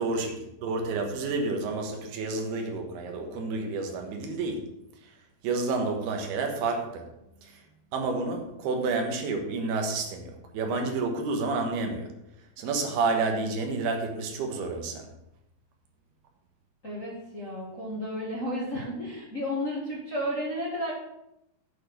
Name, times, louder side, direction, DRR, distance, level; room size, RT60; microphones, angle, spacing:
voice 1, 0.0-4.7 5.0-5.2 5.4-7.1 7.4-7.6 7.9-12.2 12.6-15.1, right 3 dB, 90° right, 3.4 m, -30 dB
voice 2, 16.8-20.9, equal, 30° left, 1.6 m, -32 dB
8.6 x 6.9 x 6.6 m
omnidirectional pair, 4.5 m